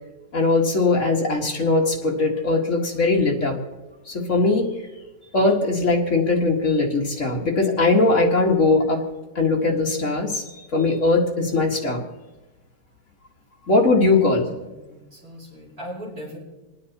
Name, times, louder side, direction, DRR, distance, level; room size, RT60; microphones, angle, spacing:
voice 1, 0.3-3.6 4.1-4.7 5.3-9.0 9.4-10.4 10.7-12.0 13.7-14.5, left 3 dB, 40° left, 0 dB, 2.0 m, -20 dB
voice 2, 14.2-16.4, equal, 25° right, -6 dB, 5.8 m, -39 dB
29.0 x 9.6 x 4.2 m, 1.1 s
omnidirectional pair, 2.1 m